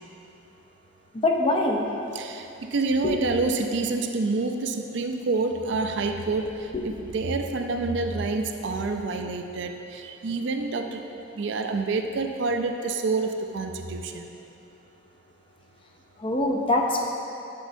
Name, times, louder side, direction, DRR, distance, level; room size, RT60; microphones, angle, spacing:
voice 1, 1.2-1.9 3.0-3.2 6.7-6.8 16.2-17.0, left 2 dB, 25° left, 1 dB, 0.5 m, -23 dB
voice 2, 2.1-11.0 11.3-14.3, right 3 dB, 65° right, 6 dB, 0.4 m, -28 dB
7.2 x 6.1 x 2.6 m, 2.9 s
head